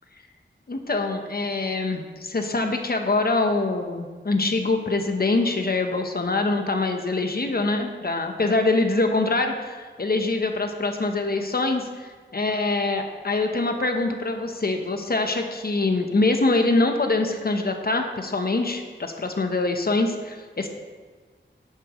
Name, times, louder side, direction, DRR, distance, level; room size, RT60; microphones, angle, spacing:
voice 1, 0.7-20.7, left 2 dB, 50° left, 5 dB, 1.0 m, -24 dB
11.0 x 8.7 x 3.1 m, 1.4 s
wide cardioid pair, 75°, 20 cm